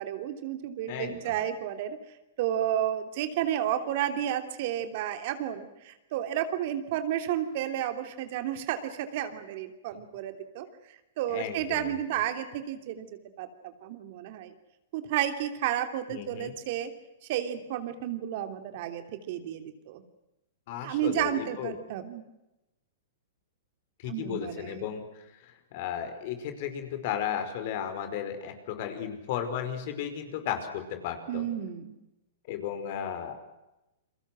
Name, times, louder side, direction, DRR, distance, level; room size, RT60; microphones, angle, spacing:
voice 1, 0.0-2.0 2.4-10.7 11.2-13.1 13.4-14.5 14.9-16.9 17.3-20.0 20.8-22.2 24.0-24.9 31.3-32.0, right 11 dB, 55° right, 8 dB, 3.1 m, -32 dB
voice 2, 0.9-1.4 9.9-10.0 11.3-12.0 16.1-16.5 20.7-21.8 24.0-31.5 32.5-33.3, left 9 dB, 55° left, 8 dB, 5.3 m, -35 dB
30.0 x 23.0 x 6.3 m, 0.94 s
hypercardioid pair, 125°, 0 cm